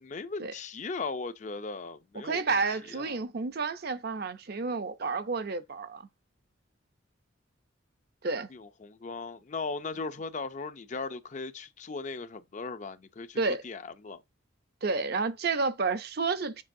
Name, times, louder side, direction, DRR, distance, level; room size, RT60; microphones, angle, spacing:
voice 1, 0.0-2.6 2.9-3.2 8.5-14.2, left 4 dB, 35° left, 0.4 m, -38 dB
voice 2, 2.1-6.1 8.2-8.5 13.4-13.6 14.8-16.6, right 4 dB, 50° right, 0.6 m, -30 dB
7.5 x 5.3 x 2.6 m
head